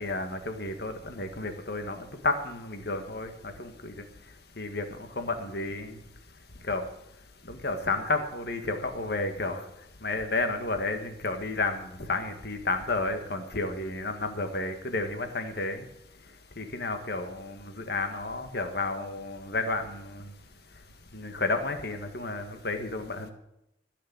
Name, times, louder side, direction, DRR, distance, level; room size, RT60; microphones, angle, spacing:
voice 1, 0.0-3.9 4.6-4.9 5.2-6.0 6.7-6.8 7.5-9.6 10.0-15.8 16.6-20.2 21.1-23.3, left 2 dB, 55° left, 6 dB, 1.7 m, -31 dB
15.5 x 6.8 x 8.6 m, 0.82 s
head